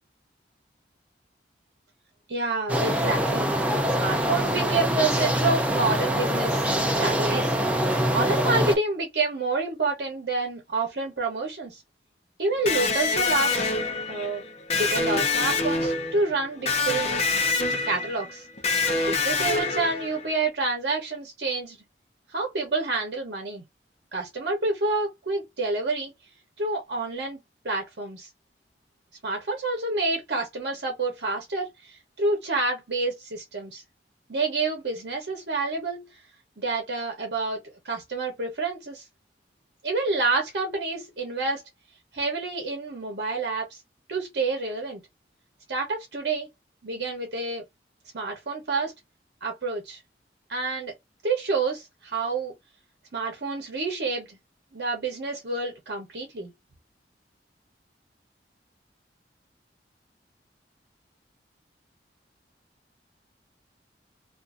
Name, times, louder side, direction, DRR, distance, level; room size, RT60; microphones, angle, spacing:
voice 1, 2.3-3.5 3.9-6.7 7.0-11.8 12.4-13.6 14.1-14.5 14.7-17.2 17.8-18.4 19.1-21.8 22.3-23.6 24.1-26.1 26.6-27.4 27.6-28.3 29.2-33.8 34.3-36.1 36.6-37.6 37.8-39.0 39.8-41.6 42.1-43.8 44.1-45.0 45.7-46.5 46.8-47.6 48.1-48.9 49.4-50.0 50.5-50.9 51.2-52.5 53.1-54.4 54.7-56.5, right 3 dB, 70° right, 0.9 m, -28 dB
sound 1, 2.7-8.8, equal, 10° right, 0.4 m, -24 dB
Electric guitar, 12.7-20.4, left 4 dB, 40° left, 0.6 m, -26 dB
2.5 x 2.5 x 2.4 m
head